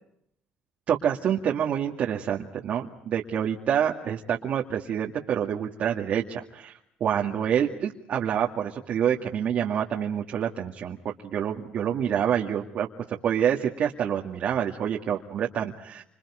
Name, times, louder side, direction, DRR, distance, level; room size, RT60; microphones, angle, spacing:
voice 1, 0.9-6.7 7.0-16.0, right 9 dB, 55° right, 0 dB, 2.2 m, -27 dB
29.5 x 27.0 x 5.0 m, 0.76 s
cardioid pair, 95°, 3 cm